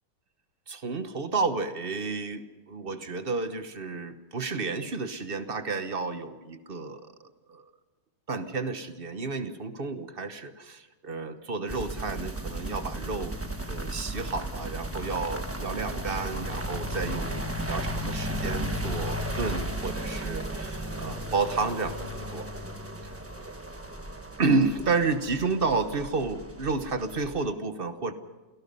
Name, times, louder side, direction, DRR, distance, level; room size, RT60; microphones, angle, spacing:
voice 1, 0.7-7.6 8.3-13.4 13.6-22.5 23.0-23.2 24.4-28.1, right 4 dB, 35° right, 9 dB, 0.9 m, -31 dB
sound 1, 11.7-27.5, right 1 dB, 10° right, 0.8 m, -35 dB
29.0 x 17.5 x 5.5 m, 1.2 s
omnidirectional pair, 2.4 m